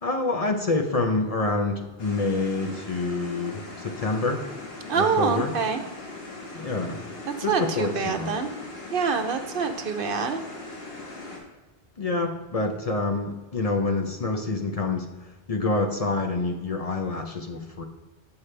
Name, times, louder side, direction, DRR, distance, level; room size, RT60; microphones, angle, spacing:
voice 1, 0.0-4.5 4.9-5.5 6.5-7.0 7.4-8.3 12.0-15.2 15.5-17.8, left 3 dB, 45° left, 3 dB, 0.6 m, -27 dB
sound 1, 2.0-11.4, left 2 dB, 70° left, 1.7 m, -40 dB
voice 2, 4.9-5.8 7.5-8.5 8.9-10.4, right 5 dB, 65° right, 7 dB, 0.8 m, -25 dB
7.2 x 6.4 x 3.3 m, 1.2 s
omnidirectional pair, 1.0 m